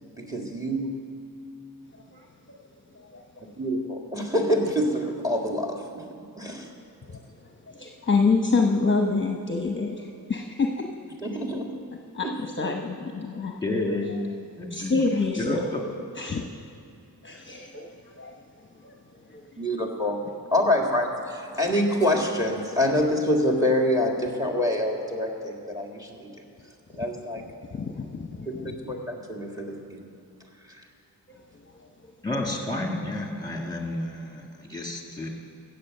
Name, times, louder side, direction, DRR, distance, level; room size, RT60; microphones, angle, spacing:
voice 1, 0.2-1.0 3.6-5.8 6.4-6.7 11.2-11.7 19.6-20.2 20.5-26.3 26.9-27.4 28.5-30.0, left 1 dB, 10° right, 1 dB, 1.9 m, -26 dB
voice 2, 1.9-2.6 2.9-3.5 6.5-6.6 7.0-10.8 12.1-13.6 14.7-15.7 16.2-16.4 17.2-18.4 18.7-19.6 20.5-20.6 26.9-27.0 27.4-28.7 31.3-31.9, left 4 dB, 30° left, 1 dB, 0.9 m, -28 dB
voice 3, 13.6-14.1 14.6-15.0 15.4-15.8 32.2-35.3, left 2 dB, 10° left, 0 dB, 2.1 m, -30 dB
15.0 x 8.0 x 6.6 m, 2.7 s
wide cardioid pair, 75°, 38 cm